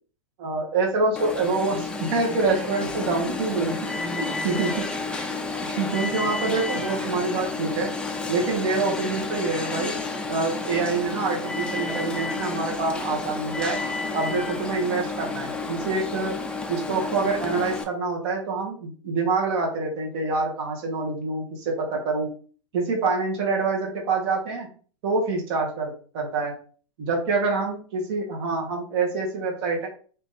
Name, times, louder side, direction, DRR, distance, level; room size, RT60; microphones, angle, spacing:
voice 1, 0.4-3.7 4.2-4.8 5.7-7.9 8.3-9.9 10.3-13.8 14.1-16.3 16.7-22.3 22.7-24.7 25.0-26.5 27.0-29.9, right 3 dB, 50° right, 0 dB, 1.4 m, -26 dB
Alarm, 1.2-17.8, left 3 dB, 5° left, 0.4 m, -31 dB
2.9 x 2.8 x 3.8 m, 0.43 s
hypercardioid pair, 125°, 17 cm